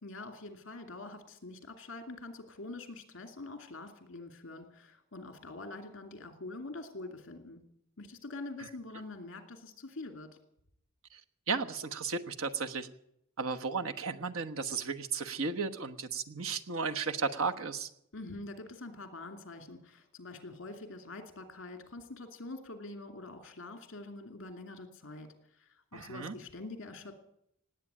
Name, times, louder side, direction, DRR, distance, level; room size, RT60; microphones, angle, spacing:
voice 1, 0.0-7.6 8.0-10.4 18.1-25.3 25.6-27.1, left 2 dB, 60° left, 6 dB, 2.5 m, -45 dB
voice 2, 11.5-12.9 13.4-17.9 25.9-26.3, right 4 dB, 75° right, 7 dB, 1.2 m, -34 dB
18.5 x 8.7 x 9.0 m, 0.74 s
head